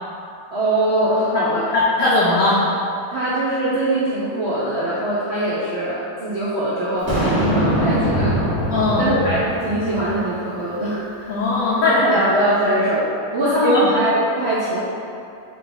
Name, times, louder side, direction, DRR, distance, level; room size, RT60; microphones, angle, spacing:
voice 1, 0.5-1.6 3.1-8.5 9.0-11.4 11.8-14.8, right 1 dB, 70° right, -10 dB, 0.6 m, -22 dB
voice 2, 1.7-2.6 8.7-9.1 11.3-12.2 13.6-13.9, left 2 dB, 70° left, -7 dB, 0.9 m, -18 dB
Boom, 7.1-10.4, right 1 dB, 20° right, 1.5 m, -22 dB
3.6 x 3.1 x 3.9 m, 2.6 s
omnidirectional pair, 1.9 m